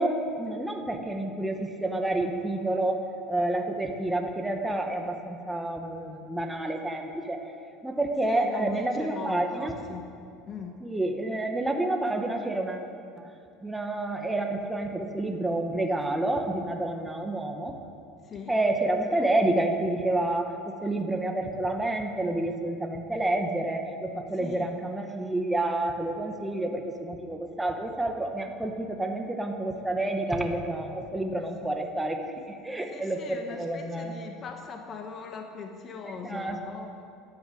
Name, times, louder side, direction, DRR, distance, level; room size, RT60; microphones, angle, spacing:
voice 1, 0.0-7.4 7.8-9.8 10.8-12.9 13.2-13.3 13.6-17.8 18.5-34.1 36.2-36.9, right 1 dB, 5° right, 3 dB, 1.4 m, -29 dB
voice 2, 8.3-10.1 10.5-10.8 18.2-18.6 24.4-24.8 32.9-36.9, left 5 dB, 30° left, 3 dB, 1.3 m, -40 dB
14.5 x 11.0 x 9.3 m, 2.5 s
cardioid pair, 145°, 0 cm